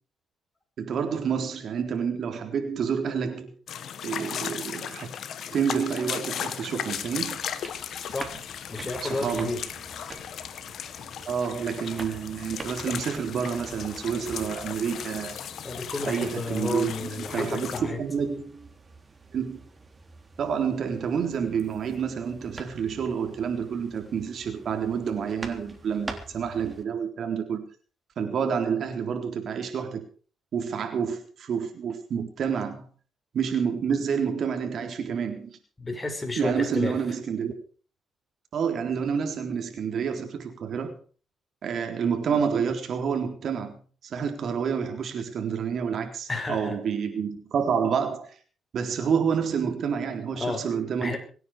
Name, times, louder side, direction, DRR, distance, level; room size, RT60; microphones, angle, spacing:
voice 1, 0.8-3.5 4.0-5.1 5.5-7.4 8.8-9.5 11.3-15.4 16.0-18.7 19.3-19.6 20.4-27.6 28.2-30.0 30.5-32.9 33.3-35.6 36.4-37.5 38.5-40.9 41.6-48.3 48.7-51.2, right 7 dB, 60° right, 3.8 m, -29 dB
sound 1, 3.7-17.8, left 8 dB, 65° left, 1.7 m, -36 dB
sound 2, 6.9-26.8, right 3 dB, 25° right, 3.5 m, -46 dB
voice 2, 8.7-9.6 15.6-18.0 35.8-37.0 46.3-46.7 50.3-50.6 51.0-51.2, left 2 dB, 20° left, 6.2 m, -31 dB
25.0 x 9.7 x 5.1 m
cardioid pair, 90°, 0 cm